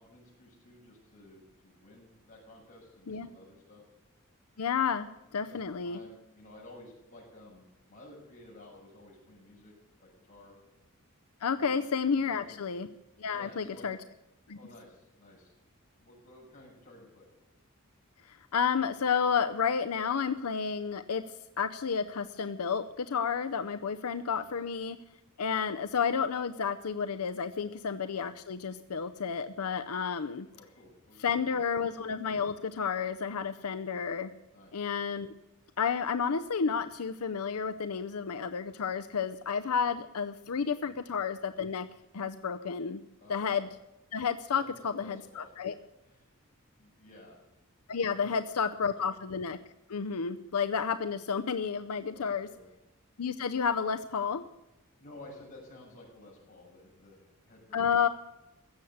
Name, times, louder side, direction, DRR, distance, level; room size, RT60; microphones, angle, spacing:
voice 1, 0.0-3.8 5.4-9.7 10.0-10.6 11.5-11.8 12.2-12.6 13.3-13.9 14.5-15.6 16.0-17.3 24.4-24.6 27.6-27.8 30.5-31.5 34.5-34.7 40.8-41.0 43.2-43.6 44.5-45.5 46.0-46.2 46.8-47.4 48.1-48.7 49.0-49.1 52.0-52.7 55.0-57.8, left 1 dB, 35° left, -3 dB, 6.7 m, -53 dB
voice 2, 4.6-6.0 11.4-12.9 13.2-14.0 14.5-14.6 18.3-21.2 21.6-25.0 25.4-30.5 31.2-34.3 34.7-35.3 35.8-41.9 42.1-43.0 43.3-43.7 44.1-45.7 47.9-49.6 49.9-52.5 53.2-54.4 57.7-58.1, left 6 dB, 85° left, 10 dB, 0.6 m, -31 dB
16.0 x 7.2 x 9.2 m, 0.96 s
head